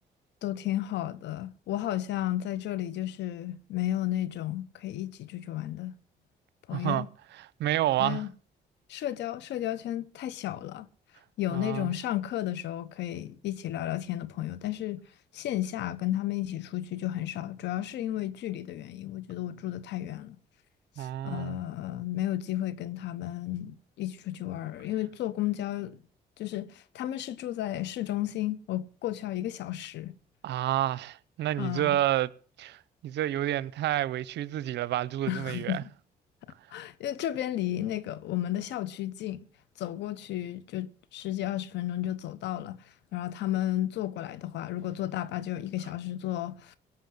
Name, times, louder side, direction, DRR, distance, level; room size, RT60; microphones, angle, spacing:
voice 1, 0.4-5.9 6.7-7.1 8.0-8.3 8.9-10.9 11.4-15.0 15.3-20.4 21.0-26.0 26.4-30.1 31.6-32.0 35.3-35.9 36.7-39.5 39.8-42.8 43.1-46.8, left 13 dB, 80° left, 1.0 m, -33 dB
voice 2, 6.7-7.0 7.6-8.2 11.5-11.9 21.0-21.6 30.4-32.3 32.6-35.8, right 13 dB, 75° right, 0.6 m, -29 dB
17.5 x 7.2 x 7.8 m
cardioid pair, 70°, 18 cm